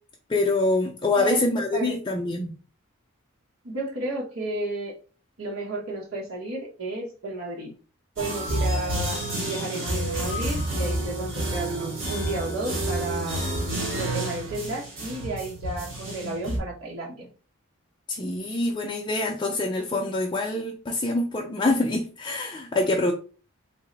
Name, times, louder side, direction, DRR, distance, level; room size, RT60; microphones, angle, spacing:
voice 1, 0.3-2.6 18.1-23.1, left 2 dB, 20° left, 0.4 m, -25 dB
voice 2, 3.6-4.9 5.4-7.7 8.2-9.2 9.5-13.4 13.9-17.3, right 2 dB, 85° right, 1.1 m, -32 dB
sound 1, 8.2-16.6, right 1 dB, 65° right, 1.7 m, -29 dB
3.7 x 2.1 x 3.8 m
head